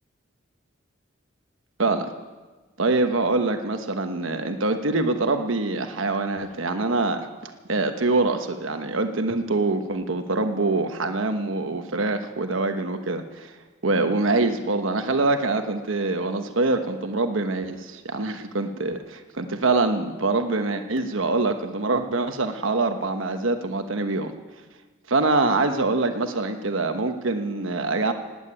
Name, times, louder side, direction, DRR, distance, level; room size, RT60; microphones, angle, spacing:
voice 1, 1.8-2.1 2.8-13.5 13.8-24.3 25.1-28.1, right 3 dB, 85° right, 7 dB, 1.1 m, -24 dB
18.5 x 9.0 x 8.8 m, 1.3 s
head